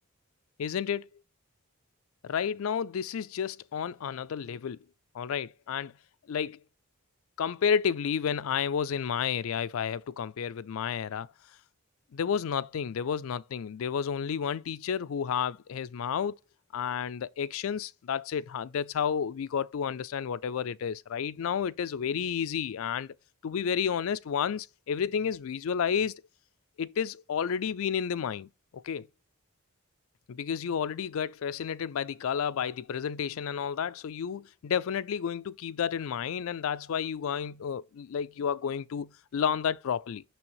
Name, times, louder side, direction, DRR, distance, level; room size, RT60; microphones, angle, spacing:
voice 1, 0.6-1.1 2.2-4.8 5.1-5.9 6.3-6.6 7.4-11.3 12.1-16.4 16.7-23.1 23.4-26.2 26.8-29.1 30.3-40.2, left 7 dB, 75° left, 0.4 m, -31 dB
6.2 x 6.1 x 3.0 m
head